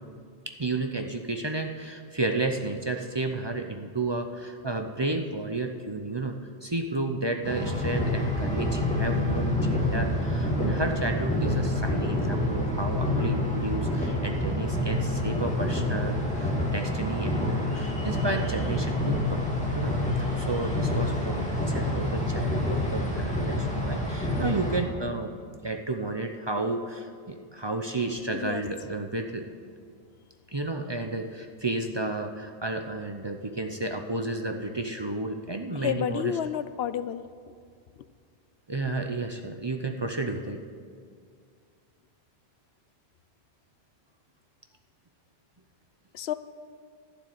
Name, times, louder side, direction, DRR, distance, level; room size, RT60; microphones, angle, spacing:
voice 1, 0.5-25.3 25.6-29.5 30.5-36.4 38.7-40.6, right 2 dB, 30° right, 5 dB, 0.6 m, -32 dB
sound 1, 7.4-24.8, left 1 dB, 5° left, 2.4 m, -27 dB
voice 2, 35.8-37.2 46.1-46.3, left 9 dB, 75° left, 14 dB, 0.8 m, -30 dB
11.5 x 7.3 x 10.0 m, 2.2 s
omnidirectional pair, 1.1 m